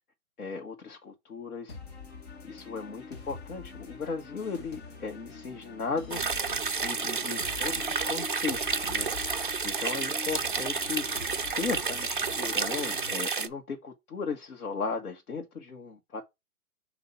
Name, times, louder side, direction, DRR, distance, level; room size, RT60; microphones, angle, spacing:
voice 1, 0.4-1.8 2.4-6.2 6.8-9.3 9.6-11.0 11.5-16.2, left 5 dB, 80° left, 1.6 m, -36 dB
sound 1, 1.7-13.1, left 4 dB, 45° left, 1.6 m, -45 dB
sound 2, 6.1-13.5, right 5 dB, 40° right, 0.4 m, -30 dB
7.0 x 2.8 x 5.7 m
hypercardioid pair, 160°, 44 cm